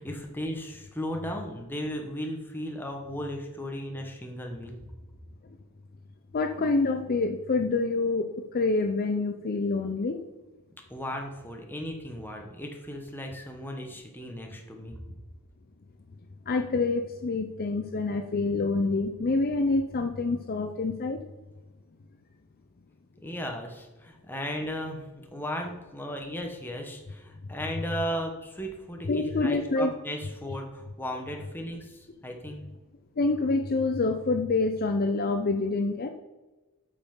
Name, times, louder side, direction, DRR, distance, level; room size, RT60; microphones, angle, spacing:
voice 1, 0.0-4.8 10.9-15.0 23.2-32.6, equal, 10° left, 2 dB, 1.2 m, -36 dB
voice 2, 6.3-10.2 16.5-21.2 29.1-29.9 33.2-36.1, left 3 dB, 40° left, 6 dB, 0.5 m, -27 dB
8.3 x 5.6 x 5.5 m, 1.1 s
head